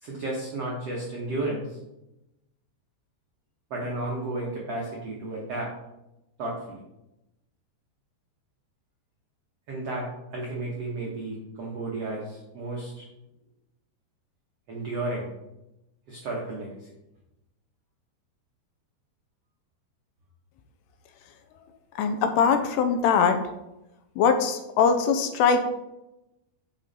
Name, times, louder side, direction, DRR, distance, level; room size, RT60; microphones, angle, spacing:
voice 1, 0.0-1.8 3.7-5.7 6.4-6.8 9.7-13.1 14.7-15.3 16.1-16.9, right 2 dB, 85° right, -3 dB, 1.3 m, -33 dB
voice 2, 22.0-23.4 24.2-25.6, left 6 dB, 80° left, 7 dB, 2.7 m, -22 dB
8.8 x 6.2 x 4.2 m, 0.93 s
omnidirectional pair, 5.0 m